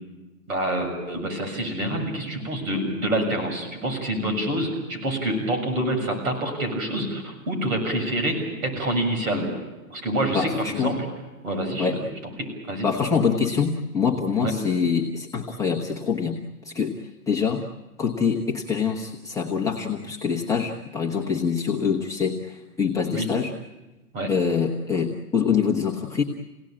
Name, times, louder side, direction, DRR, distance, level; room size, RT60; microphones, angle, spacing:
voice 1, 0.5-9.5 9.9-11.0 11.4-12.0 12.4-12.9 14.4-14.5 23.1-23.3 24.1-24.3, right 1 dB, 60° right, 4 dB, 7.1 m, -27 dB
voice 2, 10.3-11.0 11.8-12.0 12.8-16.4 16.6-17.7 18.0-23.5 24.3-26.2, left 6 dB, 5° left, -3 dB, 1.1 m, -25 dB
28.0 x 17.5 x 8.9 m, 1.1 s
hypercardioid pair, 130°, 47 cm